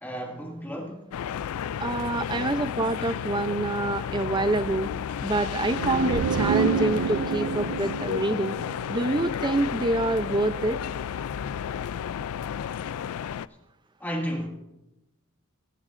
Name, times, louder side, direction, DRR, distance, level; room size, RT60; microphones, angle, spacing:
voice 1, 0.0-1.0 14.0-14.5, equal, 10° left, 1.9 m, -32 dB
sound 1, 1.1-13.5, left 8 dB, 85° left, 0.3 m, -32 dB
voice 2, 1.8-4.9 5.2-8.6 8.9-10.8, right 2 dB, 20° right, 0.5 m, -26 dB
sound 2, 5.8-9.4, right 6 dB, 80° right, 0.4 m, -28 dB
20.5 x 11.0 x 2.6 m
head